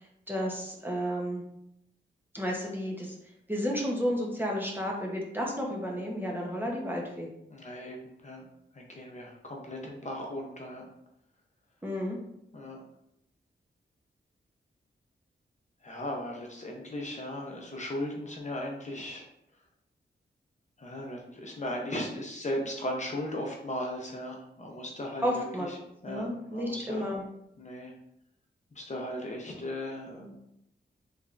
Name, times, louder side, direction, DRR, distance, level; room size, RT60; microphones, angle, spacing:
voice 1, 0.3-1.4 2.3-3.2 3.5-7.3 11.8-12.2 25.2-25.7 26.0-27.2, equal, 10° right, -2 dB, 0.8 m, -32 dB
voice 2, 7.5-8.0 8.2-8.4 8.7-10.8 12.5-12.8 15.8-19.3 20.8-25.4 26.0-27.0 27.6-27.9 28.8-30.4, left 1 dB, 40° left, 0 dB, 0.6 m, -37 dB
3.5 x 3.2 x 2.4 m, 0.78 s
wide cardioid pair, 90°, 19 cm